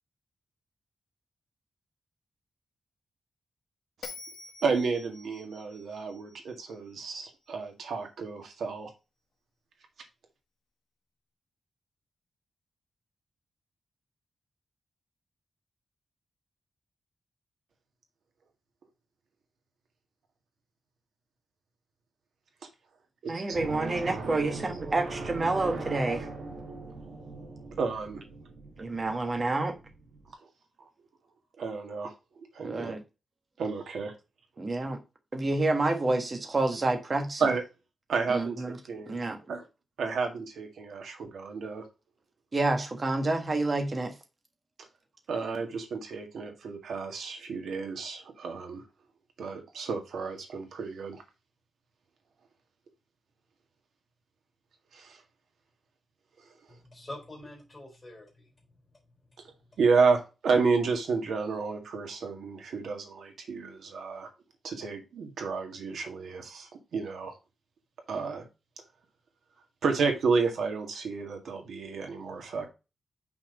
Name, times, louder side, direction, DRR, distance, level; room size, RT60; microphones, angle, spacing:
Bell, 4.0-7.3, left 4 dB, 70° left, 1.6 m, -47 dB
voice 1, 4.6-8.9 23.2-23.6 27.8-28.2 31.6-32.9 33.6-34.1 37.4-37.6 38.1-39.2 39.5-39.7 40.0-41.9 45.3-48.8 49.4-51.2 54.9-55.2 59.4-59.5 59.8-64.3 64.6-67.4 68.1-68.4 69.8-72.7, right 4 dB, 90° right, 1.9 m, -31 dB
voice 2, 23.3-26.3 28.8-29.7 32.6-33.0 34.6-35.0 35.3-37.4 38.3-38.8 39.1-39.4 42.5-44.1, right 2 dB, 30° right, 1.4 m, -28 dB
sound 1, 23.5-30.3, right 3 dB, 75° right, 2.1 m, -40 dB
voice 3, 56.7-58.5 72.4-72.6, left 1 dB, 20° left, 3.7 m, -45 dB
5.9 x 4.3 x 5.2 m
wide cardioid pair, 165°, 0 cm